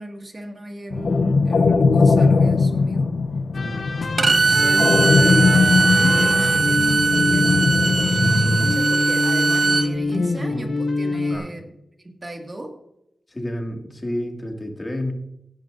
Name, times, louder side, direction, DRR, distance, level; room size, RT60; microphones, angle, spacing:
voice 1, 0.0-3.2 4.2-12.8, right 1 dB, 30° right, 3 dB, 1.9 m, -35 dB
sound 1, 0.9-8.8, left 4 dB, 75° left, 0.6 m, -20 dB
sound 2, 3.5-11.4, left 2 dB, 60° left, 1.6 m, -25 dB
Bowed string instrument, 4.2-9.9, right 4 dB, 45° right, 0.6 m, -20 dB
voice 2, 13.3-15.1, left 1 dB, 20° left, 2 dB, 2.1 m, -30 dB
17.0 x 10.5 x 2.6 m, 0.81 s
wide cardioid pair, 120°, 0 cm